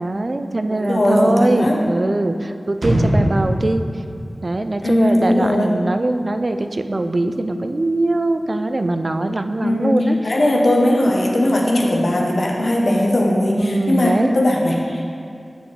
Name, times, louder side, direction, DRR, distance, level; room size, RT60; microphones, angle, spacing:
voice 1, 0.0-3.8 4.4-10.2 13.6-14.4, right 2 dB, 50° right, 8 dB, 0.4 m, -21 dB
voice 2, 0.7-1.8 4.8-5.7 9.6-15.1, left 1 dB, 70° left, -1 dB, 0.9 m, -18 dB
sound 1, 2.8-5.6 5.9-6.0, right 1 dB, 70° right, 0.9 m, -22 dB
8.6 x 5.4 x 3.3 m, 2.5 s
wide cardioid pair, 55°, 0 cm